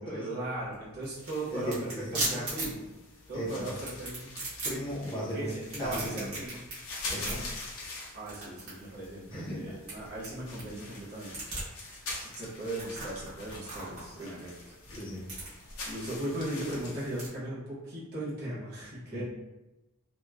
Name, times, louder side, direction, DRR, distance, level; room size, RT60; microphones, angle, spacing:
voice 1, 0.0-2.8 3.3-4.4 5.1-6.6 8.1-11.4 12.2-14.7 15.8-19.2, right 1 dB, 50° right, -9 dB, 1.0 m, -38 dB
sound 1, 0.5-17.3, right 2 dB, 85° right, 1.1 m, -40 dB
sound 2, 1.1-17.3, left 2 dB, 70° left, 0.7 m, -45 dB
voice 2, 1.5-2.3 3.3-3.7 4.6-5.5 5.8-6.3 7.1-7.4 9.3-9.8 15.0-15.3 19.1-19.2, equal, 25° left, -7 dB, 0.6 m, -36 dB
2.9 x 2.0 x 2.3 m, 1.0 s
head